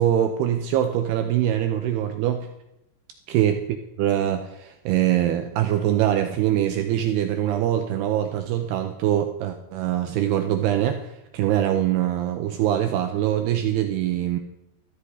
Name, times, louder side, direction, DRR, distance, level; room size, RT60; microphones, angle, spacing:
voice 1, 0.0-2.5 3.3-14.4, right 11 dB, 80° right, 6 dB, 2.3 m, -23 dB
14.0 x 10.0 x 4.9 m, 0.87 s
omnidirectional pair, 5.3 m